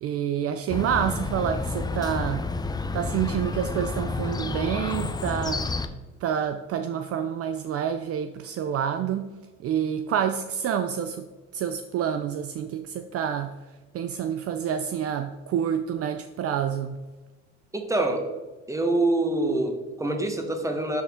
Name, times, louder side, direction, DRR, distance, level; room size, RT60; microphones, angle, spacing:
voice 1, 0.0-2.4 2.9-5.7 6.2-9.3 9.6-11.3 11.5-13.6 13.9-17.0, right 8 dB, 50° right, 9 dB, 0.5 m, -28 dB
Chirp tweet, 0.7-5.9, left 3 dB, 15° left, 0.6 m, -30 dB
voice 2, 17.7-18.2 18.7-21.0, right 2 dB, 10° right, 4 dB, 1.4 m, -25 dB
12.0 x 4.2 x 3.6 m, 1.2 s
supercardioid pair, 85°, 31 cm